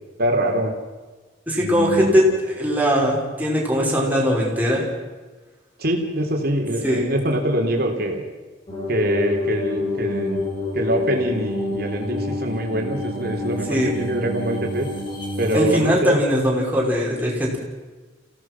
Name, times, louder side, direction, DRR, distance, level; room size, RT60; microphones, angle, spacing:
voice 1, 0.2-0.8 1.6-2.2 5.8-8.2 8.9-10.4 10.7-14.9 15.4-16.2, right 1 dB, 50° right, 2 dB, 3.6 m, -24 dB
voice 2, 1.5-4.8 6.8-7.1 13.7-13.9 15.5-17.6, equal, 10° right, -3 dB, 5.3 m, -20 dB
sound 1, 8.7-15.8, left 2 dB, 25° left, 6.7 m, -28 dB
28.5 x 17.0 x 6.1 m, 1.3 s
head